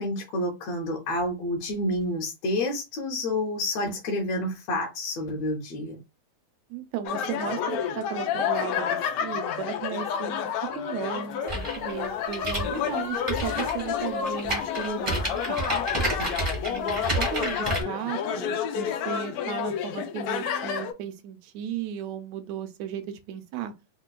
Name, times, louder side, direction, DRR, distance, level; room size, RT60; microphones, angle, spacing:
voice 1, 0.0-6.0 16.2-16.4, left 1 dB, 70° left, 1.8 m, -29 dB
voice 2, 6.7-15.6 16.7-23.7, right 9 dB, 80° right, 1.7 m, -35 dB
sound 1, 7.1-20.9, left 8 dB, 85° left, 1.3 m, -30 dB
sound 2, 11.5-17.8, right 1 dB, 25° right, 0.6 m, -30 dB
5.1 x 2.2 x 2.3 m
omnidirectional pair, 3.4 m